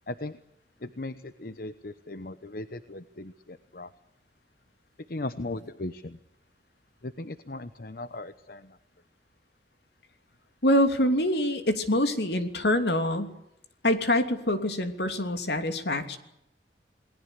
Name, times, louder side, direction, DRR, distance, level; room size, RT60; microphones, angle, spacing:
voice 1, 0.1-0.4 0.8-3.9 5.1-6.2 7.0-8.8, left 2 dB, 55° left, 12 dB, 1.0 m, -38 dB
voice 2, 10.6-13.3 13.8-16.2, left 1 dB, 70° left, 7 dB, 2.9 m, -25 dB
29.0 x 19.5 x 8.3 m, 0.82 s
head